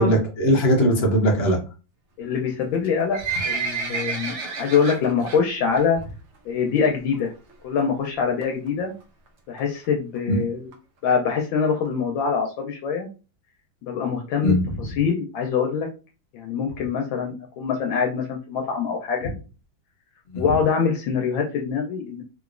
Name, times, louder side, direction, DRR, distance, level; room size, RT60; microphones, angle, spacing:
voice 1, 0.0-1.6 10.3-10.4 14.4-14.6 20.3-20.4, equal, 55° left, 1 dB, 0.7 m, -19 dB
voice 2, 2.2-3.2 3.4-6.0 6.5-7.3 7.6-8.9 9.5-10.7 11.0-13.1 13.8-15.9 16.3-19.3 20.4-22.2, left 6 dB, 80° left, 2 dB, 1.3 m, -24 dB
Livestock farm animals working animals, 2.7-5.4 5.8-6.0 6.3-6.4 7.1-7.2 7.5-7.6 7.8-7.9 8.4-8.7 9.3-9.4 9.6-9.7 9.8-9.9 10.2-10.3 10.7-10.8 11.3-11.4 11.8-11.9, right 4 dB, 85° right, 0.6 m, -30 dB
3.4 x 3.0 x 2.4 m, 0.34 s
omnidirectional pair, 2.1 m